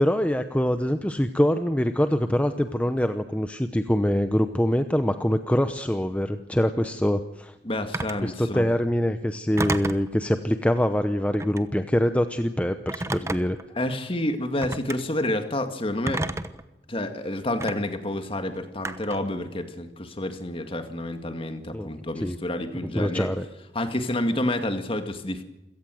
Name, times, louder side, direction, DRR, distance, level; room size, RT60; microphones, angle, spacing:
voice 1, 0.0-7.5 8.2-13.6 21.7-21.9 22.2-22.4 22.9-23.5, equal, 10° left, 8 dB, 0.8 m, -24 dB
voice 2, 7.6-8.7 13.7-16.3 16.9-23.3 23.7-25.4, left 1 dB, 30° left, 8 dB, 2.1 m, -29 dB
Telephone, 7.9-8.3 9.6-10.1 11.3-11.7 12.9-13.6 14.6-15.0 16.1-16.6 17.6-17.7 18.8-19.3, right 2 dB, 15° right, 1.1 m, -30 dB
27.5 x 17.5 x 7.8 m, 0.96 s
head